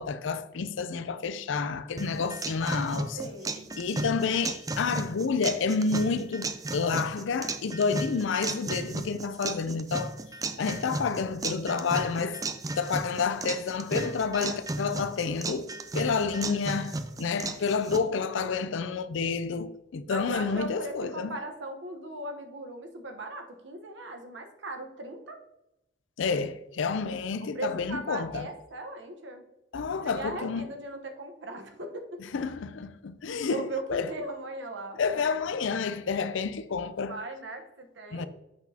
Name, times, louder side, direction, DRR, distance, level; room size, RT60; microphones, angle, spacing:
voice 1, 0.0-3.2 3.8-10.2 10.6-12.4 12.8-21.3 26.2-28.5 29.7-30.6 32.3-34.1 35.0-37.2 38.1-38.3, left 5 dB, 80° left, 0.4 m, -29 dB
sound 1, 2.0-18.0, right 2 dB, 20° right, 0.3 m, -35 dB
voice 2, 3.1-3.7 18.1-18.6 20.1-25.4 27.4-29.4 30.0-32.2 33.4-35.4 37.1-38.3, right 2 dB, 75° right, 1.0 m, -38 dB
7.9 x 6.0 x 2.8 m
head